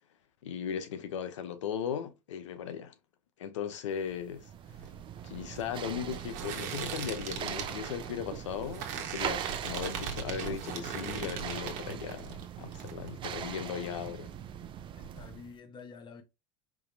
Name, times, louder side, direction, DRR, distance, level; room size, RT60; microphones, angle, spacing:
voice 1, 0.4-2.9 3.4-4.5 5.2-14.3, left 8 dB, 90° left, 0.8 m, -37 dB
sound 1, 4.1-15.6, right 9 dB, 35° right, 0.5 m, -41 dB
sound 2, 4.7-12.4 12.7-13.4, right 7 dB, 55° right, 1.3 m, -39 dB
voice 2, 15.0-16.2, left 5 dB, 30° left, 1.1 m, -48 dB
5.0 x 2.9 x 2.6 m
supercardioid pair, 105°, 15 cm